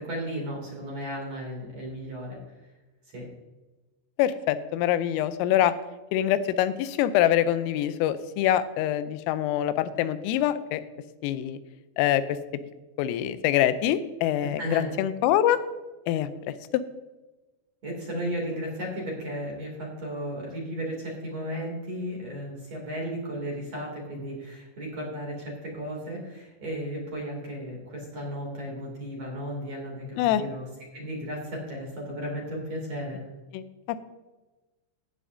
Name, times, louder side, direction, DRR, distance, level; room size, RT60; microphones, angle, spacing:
voice 1, 0.0-2.4 3.1-3.3 14.4-14.9 17.8-30.7 30.9-33.2, equal, 40° right, -1 dB, 3.1 m, -34 dB
voice 2, 4.2-5.7 6.1-10.8 11.2-11.6 12.0-12.2 13.0-15.6 16.1-16.3 30.2-30.4 33.5-33.6, left 12 dB, 90° left, 12 dB, 3.2 m, -24 dB
15.5 x 10.0 x 2.7 m, 1.1 s
omnidirectional pair, 5.7 m